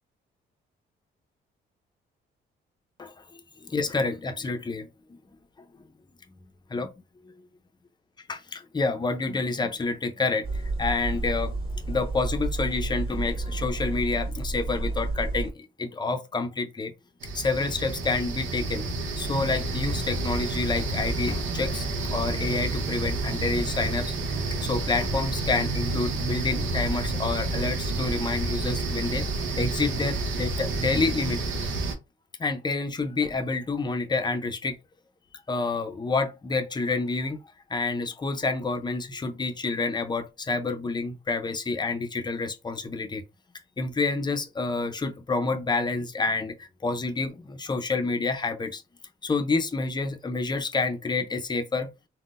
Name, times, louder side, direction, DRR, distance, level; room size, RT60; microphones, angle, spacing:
voice 1, 3.0-5.2 6.7-6.9 8.3-11.5 11.9-16.9 17.3-18.8 19.2-24.1 24.6-29.3 29.6-31.4 32.4-34.8 35.5-37.4 37.7-43.2 43.8-48.8 49.2-51.9, left 3 dB, 20° left, 0.5 m, -28 dB
sound 1, 10.4-15.5, right 2 dB, 25° right, 1.6 m, -30 dB
sound 2, 17.2-31.9, right 2 dB, 75° right, 0.8 m, -29 dB
3.6 x 2.1 x 2.5 m
cardioid pair, 90°, 20 cm